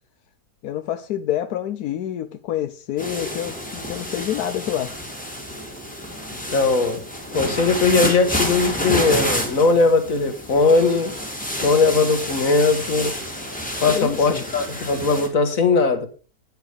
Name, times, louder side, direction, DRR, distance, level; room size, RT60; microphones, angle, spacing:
voice 1, 0.6-4.9 13.8-14.4, left 11 dB, 85° left, 1.2 m, -27 dB
sound 1, 3.0-15.3, equal, 5° left, 2.3 m, -29 dB
voice 2, 6.3-7.0 7.3-11.2 11.6-13.1 13.8-16.1, left 3 dB, 65° left, 1.9 m, -19 dB
9.5 x 8.8 x 5.0 m
omnidirectional pair, 1.6 m